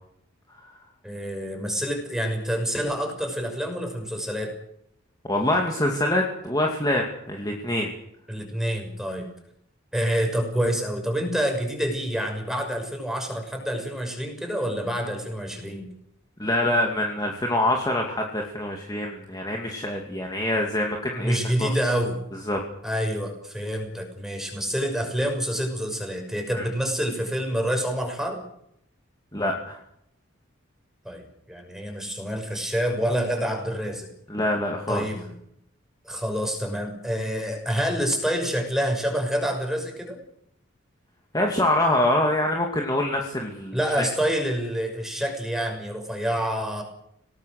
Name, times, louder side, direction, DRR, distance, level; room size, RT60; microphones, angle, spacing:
voice 1, 1.0-4.5 8.3-9.3 9.9-15.9 21.2-22.1 22.8-28.4 31.0-34.1 34.9-35.3 36.0-40.2 43.7-46.8, equal, ahead, 3 dB, 6.1 m, -27 dB
voice 2, 5.3-7.9 16.4-21.3 21.6-21.7 22.5-22.6 26.5-26.6 29.3-29.8 34.3-35.1 41.3-43.8, left 1 dB, 20° left, 1 dB, 2.5 m, -25 dB
26.5 x 19.0 x 6.7 m, 0.74 s
head